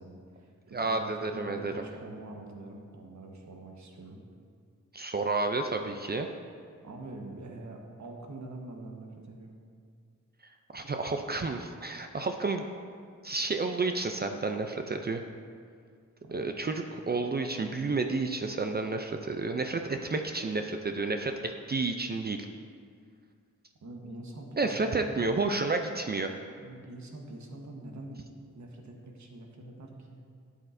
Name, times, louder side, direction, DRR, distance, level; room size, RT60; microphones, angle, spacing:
voice 1, 0.0-4.2 6.8-9.6 16.2-16.5 23.8-25.2 26.6-28.2 28.5-30.2, right 2 dB, 70° right, 1 dB, 1.3 m, -45 dB
voice 2, 0.7-1.8 4.9-6.3 10.7-12.7 13.2-15.2 16.3-22.4 24.6-26.3, right 3 dB, 35° right, 5 dB, 0.5 m, -31 dB
12.0 x 8.5 x 2.6 m, 2.1 s
wide cardioid pair, 95°, 30 cm